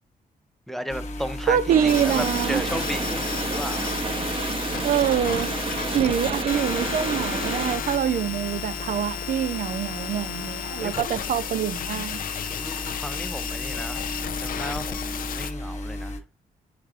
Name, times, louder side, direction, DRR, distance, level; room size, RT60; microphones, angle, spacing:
voice 1, 0.7-3.9 10.8-11.1 12.5-16.1, equal, ahead, 0.5 m, -35 dB
sound 1, 0.9-16.2, left 1 dB, 50° left, 1.1 m, -36 dB
voice 2, 1.5-2.6 4.8-5.5 5.9-12.2, right 9 dB, 65° right, 0.4 m, -25 dB
sound 2, 1.7-7.8, right 4 dB, 40° right, 0.8 m, -30 dB
sound 3, 1.9-15.5, left 8 dB, 70° left, 0.6 m, -33 dB
4.8 x 4.6 x 2.4 m
cardioid pair, 115°, 15 cm